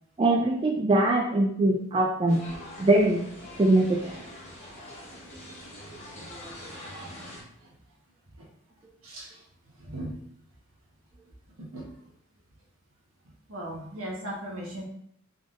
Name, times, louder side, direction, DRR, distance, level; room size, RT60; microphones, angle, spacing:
voice 1, 0.2-2.4 2.8-3.2 3.6-4.1, right 2 dB, 25° right, -1 dB, 0.4 m, -22 dB
sound 1, 2.3-7.4, equal, 35° left, 1.2 m, -43 dB
voice 2, 9.0-9.4 9.8-10.1 11.7-11.8 13.5-14.8, right 1 dB, 75° right, -3 dB, 1.2 m, -37 dB
3.7 x 3.6 x 2.5 m, 0.69 s
head